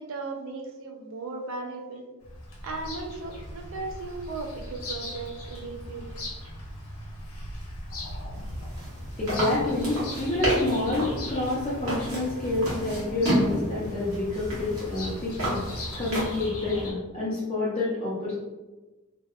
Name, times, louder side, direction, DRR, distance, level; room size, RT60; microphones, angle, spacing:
voice 1, 0.0-2.1 2.6-6.2, right 3 dB, 65° right, 3 dB, 0.4 m, -36 dB
Bird vocalization bird call bird song, 2.2-16.9, left 1 dB, 75° left, 0.8 m, -39 dB
sound 1, 8.3-16.5, right 1 dB, 85° right, 1.1 m, -31 dB
Bowed string instrument, 9.1-14.5, left 1 dB, 45° right, 0.8 m, -42 dB
voice 2, 9.2-15.6 16.0-18.3, left 2 dB, 25° left, -8 dB, 0.5 m, -28 dB
2.6 x 2.2 x 2.3 m, 1.2 s
head